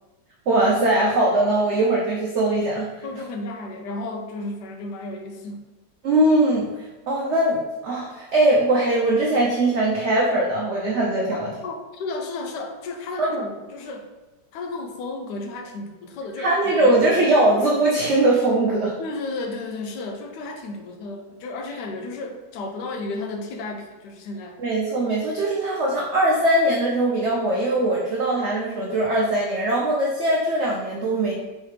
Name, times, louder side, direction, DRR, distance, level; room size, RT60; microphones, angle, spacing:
voice 1, 0.5-2.9 6.0-6.6 7.1-11.5 13.2-13.4 16.4-18.9 24.6-31.3, right 1 dB, 75° right, -3 dB, 0.6 m, -21 dB
voice 2, 3.0-5.7 11.3-14.1 14.5-16.9 19.0-24.6, left 2 dB, 75° left, 4 dB, 1.2 m, -33 dB
4.6 x 3.2 x 3.2 m, 1.1 s
omnidirectional pair, 1.9 m